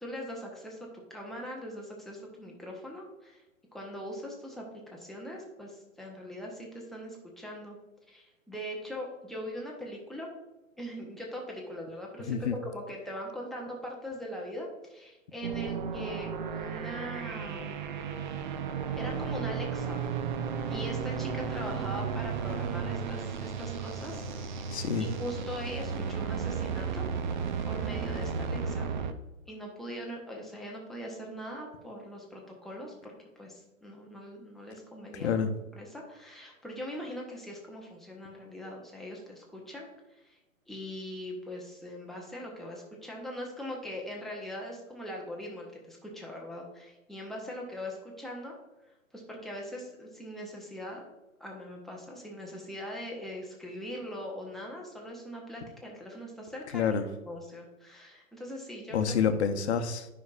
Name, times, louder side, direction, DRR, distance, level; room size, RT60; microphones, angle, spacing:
voice 1, 0.0-3.4 3.7-4.7 4.9-7.8 8.1-10.3 10.8-17.9 19.0-20.0 20.7-27.0 27.7-28.9 29.5-33.1 33.4-35.4 35.8-39.9 40.2-40.4 40.7-48.5 49.1-51.0 51.4-56.9 57.3-59.0, equal, ahead, -2 dB, 0.7 m, -41 dB
voice 2, 12.3-12.6 24.7-25.1 35.1-35.5 56.7-57.1 58.9-60.1, left 6 dB, 55° left, 7 dB, 0.9 m, -28 dB
sound 1, 15.4-29.1, right 6 dB, 35° right, 0.6 m, -34 dB
9.4 x 5.6 x 2.4 m, 1.0 s
figure-of-eight pair, 125°, 40 cm